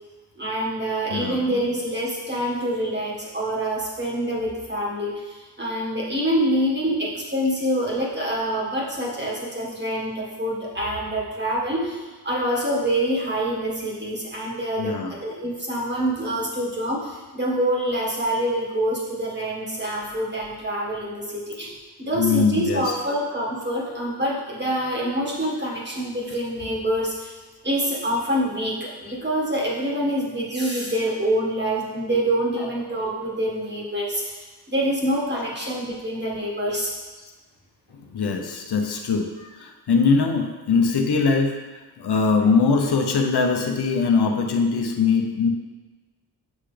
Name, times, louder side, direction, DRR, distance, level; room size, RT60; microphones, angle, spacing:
voice 1, 0.4-21.7 22.0-27.3 27.6-34.4 34.7-36.9, right 1 dB, 25° right, -4 dB, 1.7 m, -26 dB
voice 2, 1.1-1.5 14.8-15.2 22.2-23.0 35.3-35.5 37.9-39.3 39.6-41.5 42.0-45.5, left 4 dB, 75° left, 3 dB, 0.8 m, -21 dB
7.3 x 5.7 x 3.4 m, 1.3 s
wide cardioid pair, 90°, 40 cm